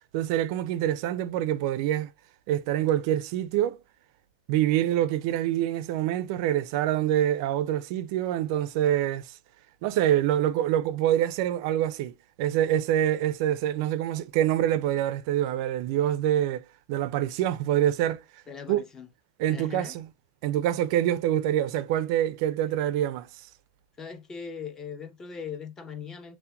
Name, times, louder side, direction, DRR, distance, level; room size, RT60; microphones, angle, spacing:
voice 1, 0.1-2.1 2.5-3.8 4.5-9.4 9.8-18.4 18.7-18.8 19.4-20.1 20.4-23.5, right 12 dB, 55° right, 0.3 m, -26 dB
voice 2, 18.5-19.1 19.5-20.0 24.0-26.4, left 6 dB, 20° left, 0.6 m, -39 dB
5.6 x 2.1 x 2.2 m
hypercardioid pair, 130°, 3 cm